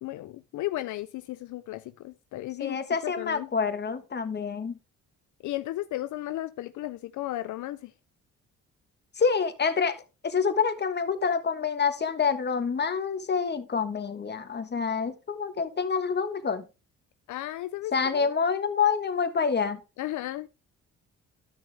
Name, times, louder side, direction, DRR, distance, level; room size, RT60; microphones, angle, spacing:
voice 1, 0.0-3.5 5.4-7.9 17.3-18.3 20.0-20.5, left 15 dB, 75° left, 0.5 m, -35 dB
voice 2, 2.6-4.8 9.2-10.0 10.2-16.7 17.9-19.8, left 5 dB, 35° left, 1.4 m, -27 dB
13.0 x 6.3 x 3.4 m
cardioid pair, 90°, 30 cm